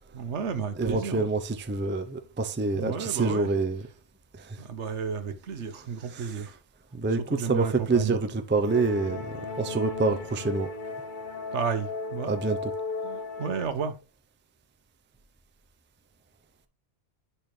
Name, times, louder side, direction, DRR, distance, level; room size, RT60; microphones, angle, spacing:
voice 1, 0.1-1.3 2.7-3.5 4.6-6.6 7.1-8.2 11.5-12.3 13.0-14.0, right 6 dB, 70° right, 1.2 m, -32 dB
voice 2, 0.8-3.8 4.4-4.6 6.1-6.5 6.9-10.7 12.3-12.7, right 3 dB, 15° right, 0.4 m, -27 dB
sound 1, 8.7-13.7, left 3 dB, 45° left, 1.1 m, -36 dB
10.5 x 4.2 x 3.2 m
omnidirectional pair, 1.2 m